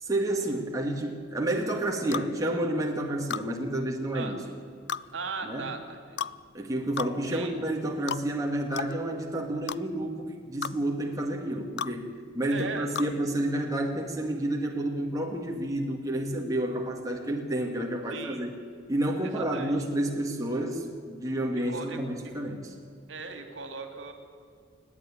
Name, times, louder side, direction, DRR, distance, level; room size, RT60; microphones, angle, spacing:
voice 1, 0.0-4.4 5.4-5.6 6.5-12.1 12.3-18.5 18.9-22.7, right 1 dB, 15° right, 0 dB, 2.0 m, -30 dB
sound 1, 2.1-2.3 3.3-3.5 4.9-5.1 6.2-6.4 7.0-7.1 8.1-8.2 8.8-8.9 9.7-9.8 10.6-10.8 11.8-11.9 13.0-13.1, left 7 dB, 60° left, 0.5 m, -32 dB
voice 2, 4.1-4.6 5.1-6.3 7.3-7.6 12.5-13.2 18.1-18.5 19.2-19.9 21.5-22.0 23.1-24.1, right 4 dB, 75° right, 6 dB, 2.4 m, -39 dB
29.0 x 9.7 x 9.9 m, 2.2 s
head